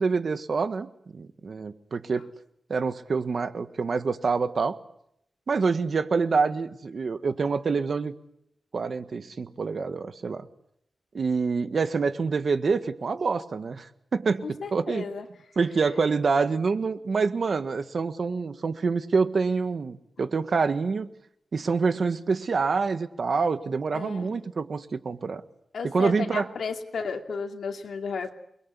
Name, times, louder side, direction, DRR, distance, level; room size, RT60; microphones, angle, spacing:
voice 1, 0.0-2.3 2.7-4.8 5.5-8.1 8.7-10.5 11.1-13.9 14.1-15.1 15.5-21.1 21.5-25.4 25.8-26.5, right 4 dB, 60° right, 10 dB, 1.6 m, -26 dB
voice 2, 14.4-15.3 23.9-24.4 25.7-28.3, left 5 dB, 85° left, 4 dB, 2.6 m, -33 dB
29.0 x 22.0 x 8.5 m, 0.74 s
wide cardioid pair, 110°, 0 cm